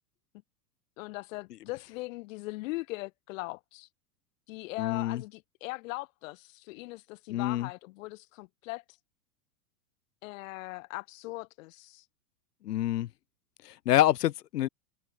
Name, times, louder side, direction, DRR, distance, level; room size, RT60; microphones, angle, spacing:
voice 1, 1.0-3.9 4.5-8.8 10.2-12.1, left 22 dB, 55° left, 3.4 m, -40 dB
voice 2, 4.8-5.2 7.3-7.7 12.6-13.1 13.7-14.7, left 13 dB, 80° left, 4.1 m, -27 dB
supercardioid pair, 150°, 47 cm